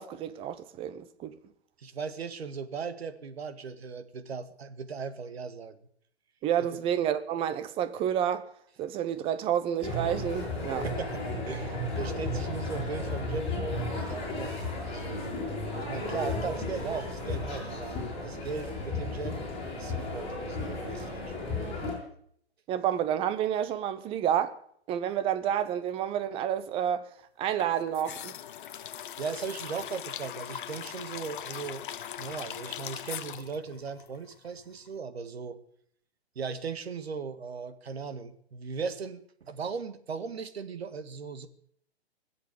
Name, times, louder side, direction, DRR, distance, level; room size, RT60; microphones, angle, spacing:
voice 1, 0.0-1.3 6.4-8.4 8.8-10.9 22.7-24.6 24.9-27.1 27.4-28.4, right 10 dB, 15° right, 0.9 m, -29 dB
voice 2, 1.8-5.8 6.6-6.8 10.8-15.2 15.9-19.4 19.8-21.5 29.2-35.6 36.3-41.5, right 5 dB, 70° right, 1.8 m, -38 dB
sound 1, 9.8-21.9, left 2 dB, 15° left, 7.3 m, -34 dB
sound 2, 27.6-34.6 34.9-35.0, left 10 dB, 50° left, 0.8 m, -40 dB
21.0 x 8.0 x 8.6 m
hypercardioid pair, 135°, 33 cm